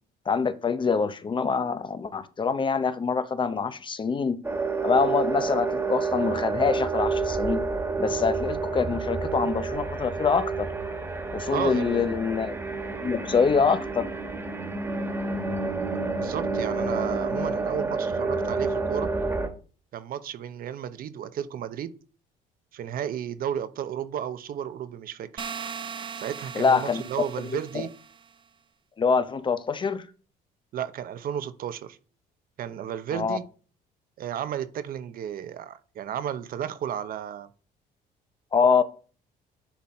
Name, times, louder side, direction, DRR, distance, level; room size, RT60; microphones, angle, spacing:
voice 1, 0.3-4.4 4.8-7.6 8.0-10.7 11.3-12.6 13.0-14.1 26.5-27.0 27.4-27.9 29.0-30.1 33.1-33.4 38.5-38.8, left 5 dB, 30° left, 0.7 m, -25 dB
sound 1, 4.4-19.5, right 4 dB, 15° right, 1.6 m, -29 dB
voice 2, 11.5-12.1 16.2-19.1 19.9-21.9 22.7-25.5 26.2-27.9 30.7-32.0 32.6-33.4 34.2-37.5, right 9 dB, 60° right, 0.8 m, -33 dB
sound 2, 25.4-28.3, right 6 dB, 30° right, 0.5 m, -38 dB
10.0 x 4.1 x 4.3 m
cardioid pair, 110°, 17 cm